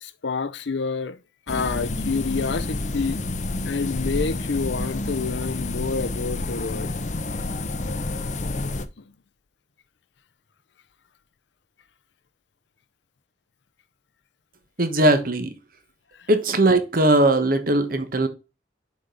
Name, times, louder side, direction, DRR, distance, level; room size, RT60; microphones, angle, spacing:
voice 1, 0.0-1.2 1.5-3.2 3.6-6.9 9.0-9.1, left 4 dB, 75° left, 0.7 m, -28 dB
sound 1, 1.5-8.8, left 2 dB, 40° left, 0.7 m, -29 dB
voice 2, 14.8-15.5 16.3-18.3, right 1 dB, 50° right, 1.3 m, -19 dB
6.9 x 5.2 x 3.9 m
head